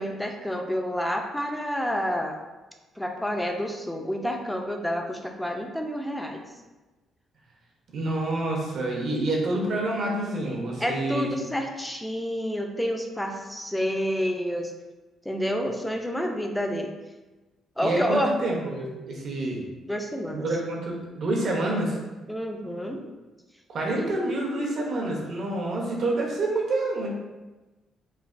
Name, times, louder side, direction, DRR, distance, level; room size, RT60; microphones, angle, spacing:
voice 1, 0.0-2.4 3.0-6.4 10.8-14.7 15.3-16.9 17.8-18.3 19.9-20.5 22.3-23.0 24.0-24.1, equal, 5° left, 3 dB, 0.4 m, -29 dB
voice 2, 7.9-11.3 17.8-19.6 20.3-22.0 23.7-27.1, right 2 dB, 55° right, -2 dB, 0.7 m, -28 dB
3.2 x 2.4 x 2.5 m, 1.1 s
cardioid pair, 110°, 0 cm